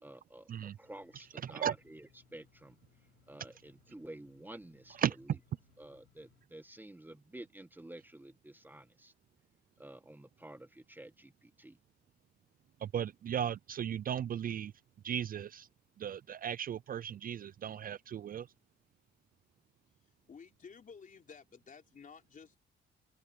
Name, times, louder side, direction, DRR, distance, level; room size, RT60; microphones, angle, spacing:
voice 1, 0.0-2.1 2.3-2.8 3.3-5.0 5.8-9.1 9.8-11.8, right 1 dB, 10° right, 1.4 m, -51 dB
sound 1, 0.8-6.5, left 12 dB, 80° left, 4.4 m, -69 dB
voice 2, 1.4-1.8 4.9-5.2 12.8-14.7 15.0-15.7 16.0-18.5, right 9 dB, 45° right, 0.4 m, -36 dB
voice 3, 20.3-22.6, left 6 dB, 40° left, 3.6 m, -53 dB
open air
cardioid pair, 90°, 20 cm